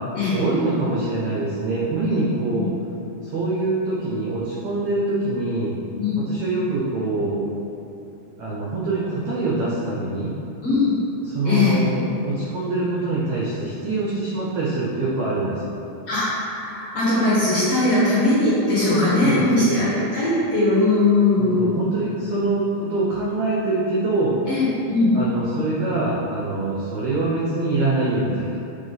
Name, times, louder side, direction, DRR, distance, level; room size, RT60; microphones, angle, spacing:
voice 1, 0.3-2.7 3.2-5.7 6.2-7.4 8.4-10.3 11.2-15.7 18.7-19.8 21.4-24.4 25.1-28.6, right 2 dB, 85° right, -5 dB, 1.5 m, -24 dB
voice 2, 11.4-11.8 16.1-21.8 24.5-25.1, left 2 dB, 55° left, -11 dB, 1.7 m, -20 dB
8.2 x 3.4 x 4.0 m, 2.8 s
omnidirectional pair, 4.2 m